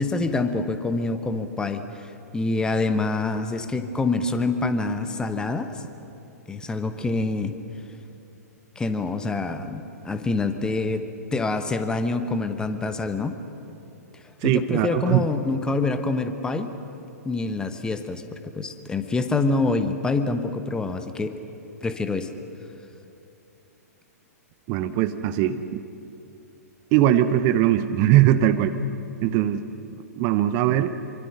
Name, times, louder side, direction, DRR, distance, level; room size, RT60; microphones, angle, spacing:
voice 1, 0.0-5.8 6.5-7.5 8.8-13.3 14.4-16.7 17.2-18.2 18.6-21.3 21.8-22.3, left 3 dB, 10° left, 8 dB, 1.2 m, -26 dB
voice 2, 14.4-15.3 24.7-25.8 26.9-28.8 29.2-29.7 30.1-30.9, right 12 dB, 30° right, 10 dB, 0.9 m, -20 dB
26.5 x 24.5 x 6.4 m, 2.7 s
figure-of-eight pair, 110°, 9 cm